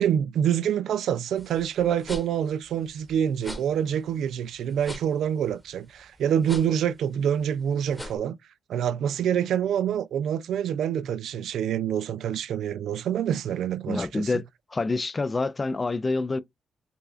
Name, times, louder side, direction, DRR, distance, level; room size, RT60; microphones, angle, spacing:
voice 1, 0.0-8.4 8.7-14.3, right 9 dB, 75° right, 0.3 m, -26 dB
sound 1, 1.4-8.2, left 1 dB, 5° left, 1.0 m, -43 dB
voice 2, 13.9-14.4 14.7-16.4, left 3 dB, 25° left, 0.3 m, -27 dB
6.7 x 2.3 x 2.4 m
cardioid pair, 120°, 0 cm